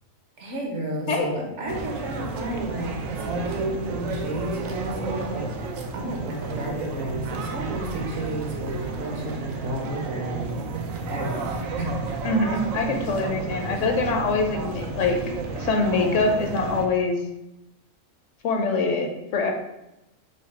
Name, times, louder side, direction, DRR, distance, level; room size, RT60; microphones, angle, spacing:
voice 1, 0.4-10.6 11.0-12.0, right 1 dB, 65° right, 0 dB, 1.2 m, -32 dB
sound 1, 1.7-16.9, right 4 dB, 85° right, 1.0 m, -32 dB
voice 2, 12.2-15.2 15.6-17.2 18.4-19.5, left 3 dB, 75° left, 2 dB, 1.0 m, -24 dB
4.9 x 2.4 x 4.2 m, 0.89 s
omnidirectional pair, 1.3 m